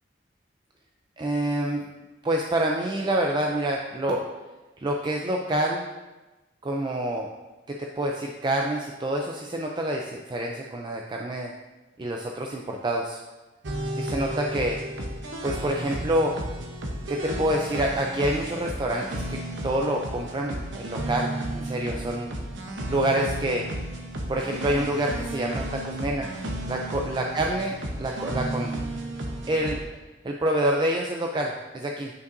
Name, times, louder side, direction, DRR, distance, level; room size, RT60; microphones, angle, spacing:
voice 1, 1.2-1.9 2.2-4.2 4.8-5.9 6.6-7.3 7.7-11.5 12.0-13.2 13.9-14.8 15.4-16.4 17.1-22.3 22.9-23.7 24.3-26.3 26.7-28.7 29.5-29.8 30.2-32.1, right 1 dB, 25° right, 1 dB, 0.4 m, -27 dB
sound 1, 13.6-29.8, right 1 dB, 80° right, 0.9 m, -33 dB
9.2 x 5.5 x 2.6 m, 1.1 s
head